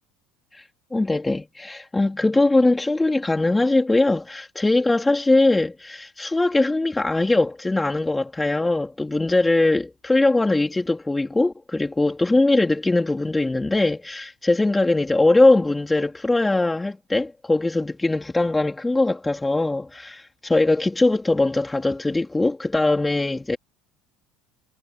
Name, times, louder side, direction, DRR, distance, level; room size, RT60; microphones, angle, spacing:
voice 1, 0.9-23.6, left 2 dB, 10° left, 3.2 m, -21 dB
hypercardioid pair, 85°, 0 cm